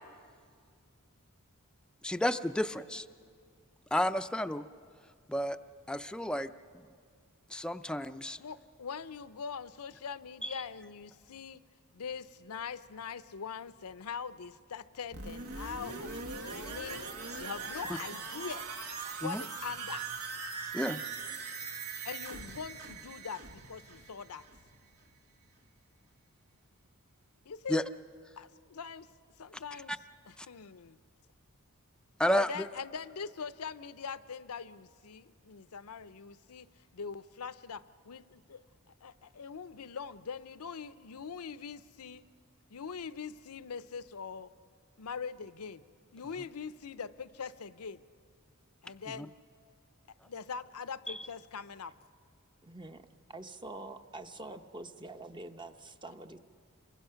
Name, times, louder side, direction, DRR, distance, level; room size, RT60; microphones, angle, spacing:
voice 1, 2.0-3.0 3.9-4.6 5.3-5.6 5.9-6.9 7.5-8.4 10.4-10.5 19.2-19.4 20.7-21.0 27.7-27.8 30.4-30.5 32.2-32.7 49.2-49.3 51.1-51.2, equal, 5° left, 10 dB, 0.5 m, -31 dB
voice 2, 8.4-11.6 11.9-17.0 17.4-18.7 19.2-20.1 22.0-24.4 27.5-27.8 28.4-29.1 29.4-30.0 30.3-31.0 32.3-36.7 36.9-38.6 39.0-42.2 42.7-44.5 45.0-45.8 46.1-48.0 48.8-49.3 50.2-51.9, left 6 dB, 75° left, 14 dB, 0.6 m, -42 dB
sound 1, 15.1-24.8 25.2-25.3, right 4 dB, 80° right, 1.6 m, -41 dB
voice 3, 52.6-53.0 53.3-56.4, right 2 dB, 20° right, 8 dB, 0.8 m, -45 dB
28.0 x 23.5 x 5.7 m, 2.1 s
head